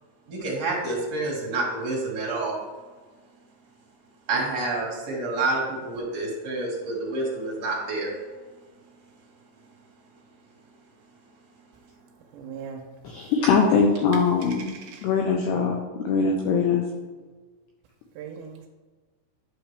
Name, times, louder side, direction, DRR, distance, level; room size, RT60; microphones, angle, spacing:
voice 1, 0.3-2.6 4.3-8.1, right 2 dB, 45° right, -3 dB, 2.5 m, -28 dB
voice 2, 12.3-12.9 13.2-13.3 14.1-15.1 18.2-18.7, right 7 dB, 80° right, 3 dB, 2.6 m, -40 dB
voice 3, 13.0-14.7 15.0-16.8, left 5 dB, 85° left, 1 dB, 2.4 m, -22 dB
11.5 x 6.3 x 3.4 m, 1.3 s
omnidirectional pair, 5.7 m